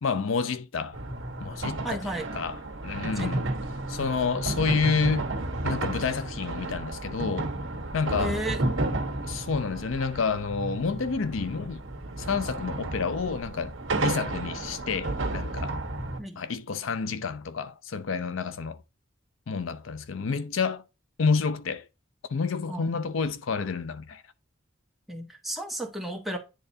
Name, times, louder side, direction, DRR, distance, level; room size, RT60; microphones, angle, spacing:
voice 1, 0.0-1.0 1.4-3.5 3.9-5.3 5.6-7.5 7.9-8.4 9.3-11.8 12.2-13.7 14.0-15.8 16.4-18.8 19.5-20.8 21.2-21.8 22.3-24.2, left 5 dB, 75° left, 0.5 m, -29 dB
sound 1, 0.9-16.2, right 2 dB, 70° right, 1.3 m, -32 dB
voice 2, 1.8-2.3 3.0-3.3 8.2-8.6 16.2-16.4 22.7-22.9 25.1-26.4, right 1 dB, ahead, 1.3 m, -33 dB
10.0 x 3.8 x 2.7 m
head